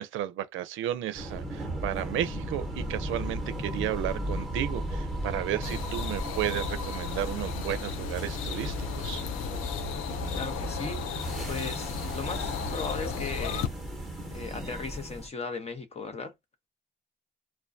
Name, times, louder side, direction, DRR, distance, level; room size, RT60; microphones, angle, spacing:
voice 1, 0.0-9.2, right 12 dB, 80° right, 0.4 m, -33 dB
sound 1, 1.1-15.3, equal, ahead, 1.0 m, -35 dB
sound 2, 5.6-13.7, left 7 dB, 90° left, 0.4 m, -35 dB
voice 2, 10.3-13.7 14.3-16.3, left 4 dB, 30° left, 0.8 m, -37 dB
2.2 x 2.2 x 2.5 m
cardioid pair, 90°, 20 cm